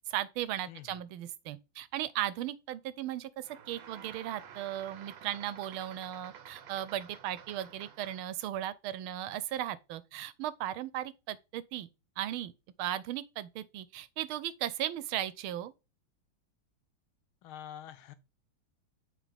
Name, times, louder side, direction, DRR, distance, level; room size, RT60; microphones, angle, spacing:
voice 1, 0.1-11.9 12.2-12.5 12.8-15.7, right 12 dB, 90° right, 1.5 m, -36 dB
voice 2, 0.7-1.0 17.4-18.1, left 10 dB, 85° left, 1.6 m, -46 dB
sound 1, 3.4-8.4, right 8 dB, 70° right, 1.6 m, -51 dB
7.6 x 3.7 x 5.0 m
omnidirectional pair, 2.2 m